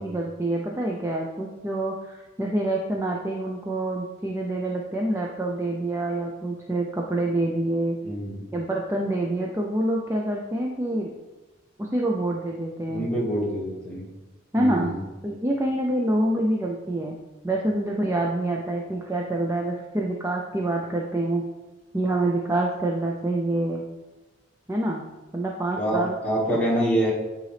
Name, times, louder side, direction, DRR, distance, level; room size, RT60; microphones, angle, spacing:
voice 1, 0.0-8.0 8.5-11.1 11.8-13.1 14.5-14.9 15.2-17.2 17.4-21.4 21.9-23.8 24.7-25.0 25.3-26.2, right 1 dB, 15° right, -1 dB, 0.4 m, -26 dB
voice 2, 8.0-8.4 12.9-14.1 14.6-15.0 25.8-27.1, right 1 dB, 5° left, -6 dB, 1.7 m, -26 dB
9.0 x 3.9 x 3.3 m, 1.1 s
head